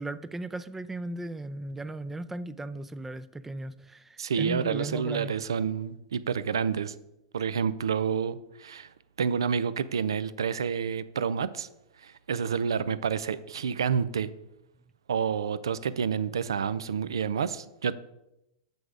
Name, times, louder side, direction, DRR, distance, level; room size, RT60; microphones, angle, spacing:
voice 1, 0.0-5.3, right 2 dB, 10° right, 0.4 m, -36 dB
voice 2, 4.2-6.9 7.3-8.9 9.2-11.7 12.0-14.3 15.1-17.9, right 6 dB, 90° right, 0.4 m, -29 dB
6.8 x 6.1 x 4.8 m
hypercardioid pair, 115°, 2 cm